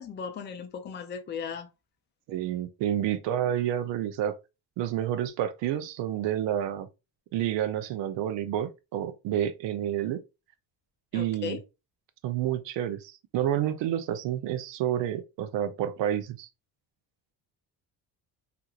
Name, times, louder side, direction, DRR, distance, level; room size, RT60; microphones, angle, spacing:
voice 1, 0.0-1.7 11.1-11.6, left 6 dB, 30° left, 0.4 m, -36 dB
voice 2, 2.3-4.3 4.8-6.9 7.3-10.2 11.1-11.6 12.2-16.5, right 11 dB, 85° right, 0.5 m, -29 dB
2.8 x 2.5 x 2.3 m
cardioid pair, 130°, 42 cm